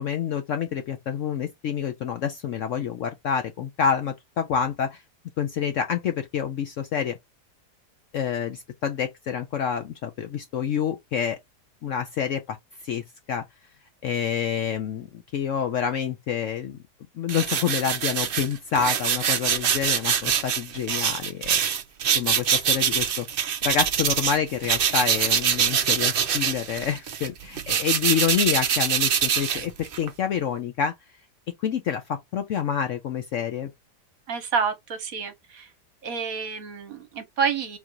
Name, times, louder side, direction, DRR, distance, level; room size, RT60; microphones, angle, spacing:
voice 1, 0.0-5.0 5.4-7.2 8.1-11.4 11.8-12.6 12.8-13.4 14.0-16.8 17.1-21.6 22.1-23.3 23.6-30.9 31.6-33.7, left 8 dB, 65° left, 0.8 m, -27 dB
sound 1, 17.3-24.4 24.6-30.1, right 8 dB, 75° right, 0.5 m, -24 dB
voice 2, 34.3-35.7 36.0-37.8, right 6 dB, 60° right, 1.3 m, -28 dB
3.9 x 2.5 x 4.4 m
omnidirectional pair, 1.8 m